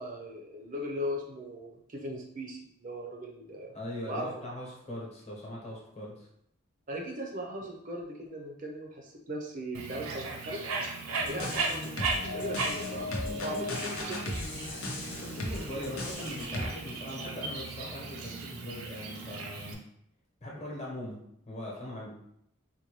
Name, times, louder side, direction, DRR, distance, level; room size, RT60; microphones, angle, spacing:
voice 1, 0.0-3.7 4.0-4.3 6.9-10.7 11.2-11.9 12.2-14.3, equal, 40° right, 0 dB, 0.5 m, -38 dB
voice 2, 3.7-6.3 15.1-19.8 20.4-21.2 21.5-22.2, left 1 dB, 30° left, -4 dB, 1.0 m, -40 dB
Bird, 9.7-19.7, right 3 dB, 85° right, 0.5 m, -37 dB
sound 1, 11.2-16.7, left 2 dB, 80° left, 0.7 m, -36 dB
4.0 x 2.2 x 3.0 m, 0.74 s
head